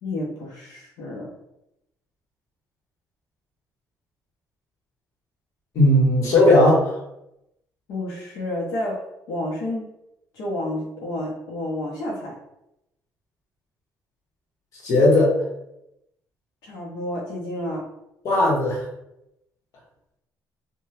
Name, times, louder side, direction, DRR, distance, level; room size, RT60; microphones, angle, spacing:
voice 1, 0.0-1.3 7.9-9.9 10.3-12.4 16.6-17.9, left 1 dB, 85° left, -3 dB, 0.6 m, -30 dB
voice 2, 5.7-7.0 14.8-15.4 18.2-18.8, left 1 dB, 55° left, -3 dB, 0.9 m, -17 dB
2.7 x 2.1 x 3.2 m, 0.85 s
cardioid pair, 155°, 7 cm